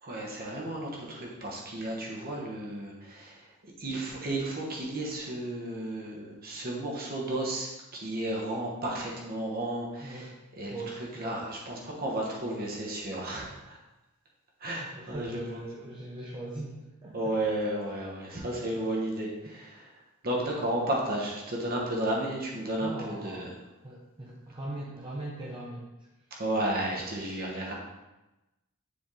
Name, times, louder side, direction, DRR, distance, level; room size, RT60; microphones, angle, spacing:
voice 1, 0.0-13.8 14.6-15.6 17.1-23.5 26.3-27.7, right 1 dB, 45° right, -2 dB, 1.3 m, -33 dB
voice 2, 10.0-10.4 10.7-11.4 14.9-17.1 22.7-23.5 23.8-25.9, right 2 dB, 25° right, -5 dB, 0.8 m, -40 dB
6.9 x 3.6 x 3.8 m, 1.0 s
head